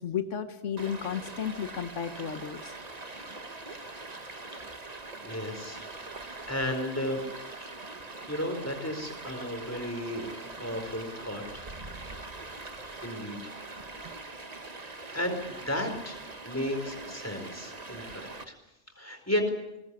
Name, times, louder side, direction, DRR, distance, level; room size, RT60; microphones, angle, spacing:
voice 1, 0.0-2.7, left 8 dB, 80° left, 9 dB, 1.5 m, -33 dB
Stream, 0.8-18.4, right 3 dB, 35° right, 1.6 m, -43 dB
voice 2, 5.2-5.9 6.5-7.2 8.3-11.6 12.0-12.1 12.3-12.5 13.0-13.5 14.0-14.1 15.1-18.5 19.0-19.4, left 1 dB, 10° left, 4 dB, 4.6 m, -34 dB
22.0 x 20.0 x 9.7 m, 0.95 s
omnidirectional pair, 1.2 m